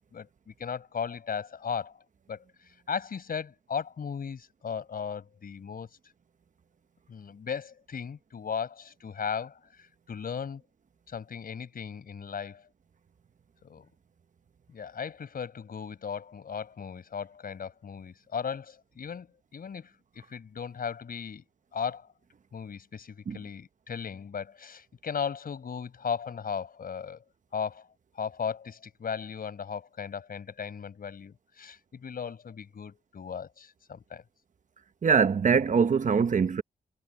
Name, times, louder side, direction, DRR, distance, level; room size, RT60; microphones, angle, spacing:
voice 1, 0.1-2.0 2.3-5.9 7.1-10.6 11.1-12.6 13.6-13.9 14.7-19.3 19.5-19.9 20.3-21.4 21.7-22.1 22.5-27.2 27.5-27.9 28.2-34.2, left 6 dB, 65° left, 5.2 m, -36 dB
voice 2, 35.0-36.6, right 6 dB, 55° right, 1.0 m, -23 dB
wide cardioid pair, 105°, 16 cm